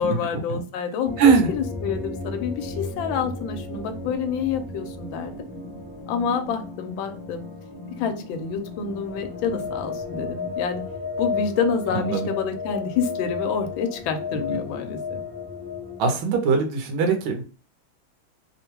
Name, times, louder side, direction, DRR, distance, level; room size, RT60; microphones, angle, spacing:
voice 1, 0.0-1.2 1.5-5.3 6.1-7.4 8.0-10.8 11.2-15.2, left 6 dB, 75° left, 6 dB, 1.3 m, -28 dB
sound 1, 1.0-16.0, left 4 dB, 20° right, 0.7 m, -33 dB
voice 2, 1.2-1.5 11.9-12.3 14.5-14.6 16.0-17.4, right 5 dB, 75° right, 4 dB, 1.5 m, -21 dB
3.6 x 2.1 x 2.9 m, 0.37 s
omnidirectional pair, 2.3 m